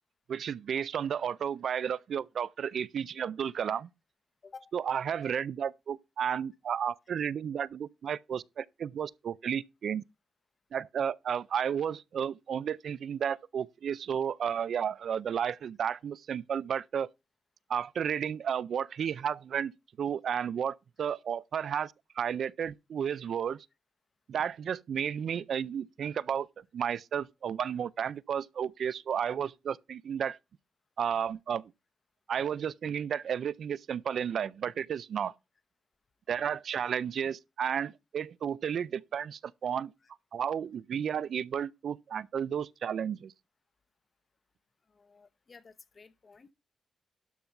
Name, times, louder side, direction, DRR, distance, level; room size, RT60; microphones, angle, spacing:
voice 1, 0.3-3.9 4.7-10.0 10.7-17.1 17.7-19.7 20.0-23.7 24.3-30.4 31.0-31.7 32.3-35.3 36.3-39.9 40.3-43.3, right 8 dB, 65° right, 0.4 m, -32 dB
voice 2, 44.9-46.5, left 4 dB, 40° left, 1.0 m, -53 dB
12.0 x 5.3 x 4.5 m
cardioid pair, 110°, 0 cm